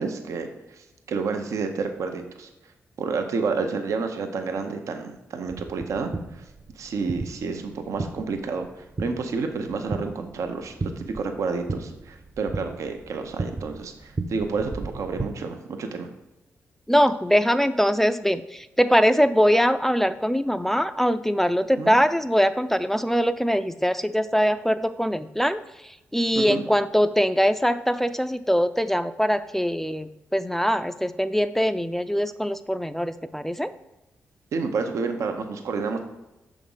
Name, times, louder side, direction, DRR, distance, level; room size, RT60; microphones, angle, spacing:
voice 1, 0.0-2.5 3.0-6.4 6.8-16.1 21.8-21.9 26.3-26.6 34.5-36.0, right 4 dB, 75° right, 5 dB, 0.7 m, -30 dB
sound 1, 5.5-15.3, right 3 dB, 35° right, 0.7 m, -35 dB
voice 2, 16.9-33.7, equal, 5° left, 12 dB, 0.3 m, -22 dB
6.0 x 3.6 x 5.4 m, 0.96 s
cardioid pair, 55°, 5 cm